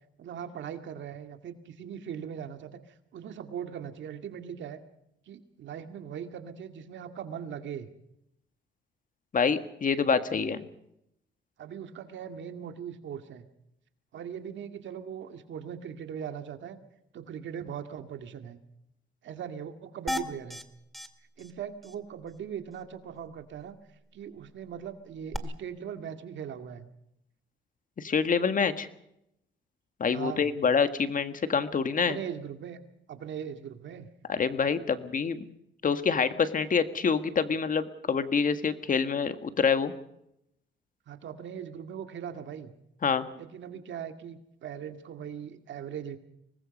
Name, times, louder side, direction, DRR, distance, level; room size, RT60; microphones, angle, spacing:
voice 1, 0.2-4.8 5.3-7.9 10.3-10.5 11.6-13.4 14.1-16.8 17.1-18.6 19.2-20.6 21.4-23.8 24.1-26.9 30.1-30.5 32.1-32.8 33.1-34.1 41.1-42.7 43.3-46.2, right 8 dB, 70° right, 7 dB, 2.2 m, -40 dB
voice 2, 9.3-10.6 28.0-28.9 30.0-32.2 34.3-35.4 35.8-39.9 43.0-43.2, left 6 dB, 45° left, 10 dB, 1.7 m, -26 dB
sound 1, 20.1-20.6 20.9-21.1 21.4-21.5 21.8-21.9 25.3-25.4, left 1 dB, ahead, 1.9 m, -33 dB
24.5 x 20.0 x 5.4 m, 0.81 s
cardioid pair, 90°, 20 cm